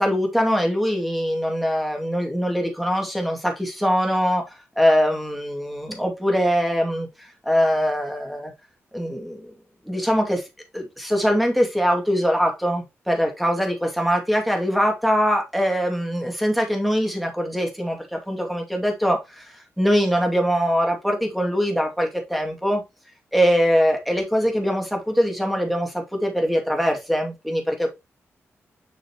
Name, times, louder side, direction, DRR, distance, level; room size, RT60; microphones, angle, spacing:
voice 1, 0.0-4.5 4.8-8.5 8.9-9.5 9.9-10.4 10.7-22.8 23.3-27.9, equal, ahead, 2.3 m, -22 dB
6.7 x 5.8 x 3.0 m
cardioid pair, 90°, 5 cm